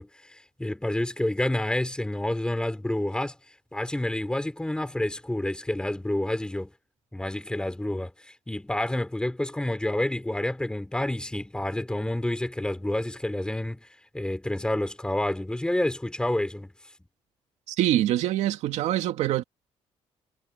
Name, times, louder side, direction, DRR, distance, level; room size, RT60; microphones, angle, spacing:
voice 1, 0.0-3.4 3.7-6.7 7.1-13.9 14.1-16.7, left 1 dB, 5° left, 5.3 m, -29 dB
voice 2, 17.7-19.4, right 13 dB, 80° right, 2.1 m, -24 dB
cardioid pair, 105°, 11 cm